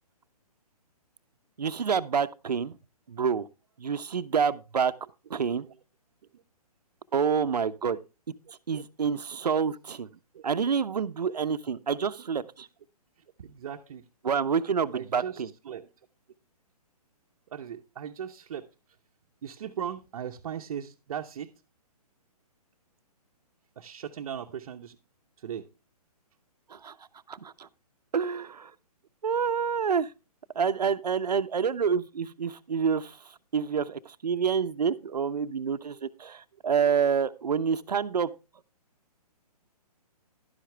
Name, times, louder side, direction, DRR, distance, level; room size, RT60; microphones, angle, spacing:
voice 1, 1.6-2.7 3.1-3.5 3.8-4.9 5.3-5.6 7.1-8.0 8.7-10.1 10.4-12.7 14.2-15.5 26.8-26.9 27.3-27.5 28.1-28.7 29.2-30.1 30.6-33.1 33.5-38.3, right 6 dB, 80° right, 0.8 m, -27 dB
voice 2, 13.4-14.0 14.9-15.9 17.5-18.7 19.4-21.5 23.8-25.0 25.4-25.7, right 8 dB, 55° right, 0.9 m, -38 dB
11.5 x 10.5 x 3.3 m
hypercardioid pair, 140°, 20 cm